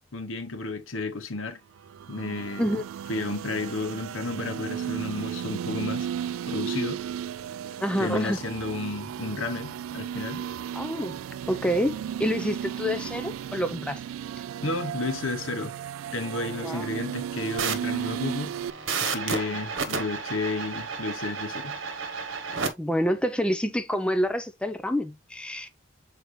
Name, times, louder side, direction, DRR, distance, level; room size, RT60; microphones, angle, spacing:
voice 1, 0.1-1.6 2.1-2.8 3.1-7.0 8.0-10.4 14.6-15.7 16.1-18.5 19.0-21.8, left 2 dB, 75° left, 1.1 m, -32 dB
sound 1, 1.8-18.7, right 9 dB, 90° right, 0.3 m, -34 dB
voice 2, 7.8-8.4 10.7-11.2 11.5-14.0 16.6-16.9 22.8-25.7, equal, 5° left, 0.5 m, -27 dB
sound 2, 17.6-22.7, right 5 dB, 70° right, 1.2 m, -32 dB
6.8 x 4.5 x 3.1 m
head